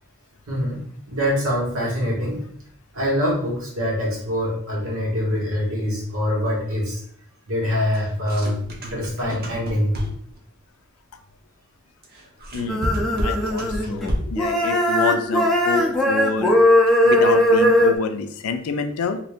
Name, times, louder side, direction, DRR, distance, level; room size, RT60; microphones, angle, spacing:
voice 1, 0.5-0.8 1.0-2.4 2.9-7.0 7.5-8.6 8.9-10.0, equal, 75° right, -3 dB, 1.4 m, -24 dB
sound 1, 7.9-10.4 12.0-14.5, equal, 45° right, 0.8 m, -30 dB
voice 2, 12.5-12.9 13.2-16.5 17.0-19.2, left 4 dB, 80° left, 8 dB, 0.4 m, -27 dB
sound 2, 12.7-14.1 14.4-17.9, left 1 dB, ahead, 0.5 m, -18 dB
2.8 x 2.7 x 3.4 m, 0.63 s
head